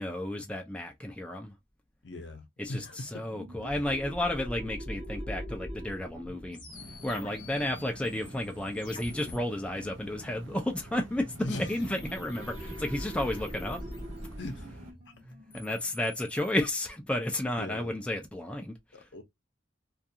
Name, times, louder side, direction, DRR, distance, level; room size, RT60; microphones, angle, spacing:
voice 1, 0.0-1.5 2.6-6.6 7.0-13.8 15.5-18.8, left 1 dB, 5° left, 0.3 m, -32 dB
voice 2, 2.0-3.2 11.4-11.8 14.4-14.7 17.6-18.0 18.9-19.2, left 1 dB, 65° left, 0.7 m, -39 dB
sound 1, 3.3-8.6 11.6-16.9, equal, 35° right, 0.8 m, -42 dB
sound 2, 6.5-9.4 11.7-14.5 15.3-16.5, left 3 dB, 25° left, 0.7 m, -49 dB
sound 3, 6.7-14.9, right 2 dB, 85° right, 0.7 m, -48 dB
2.4 x 2.3 x 2.7 m
head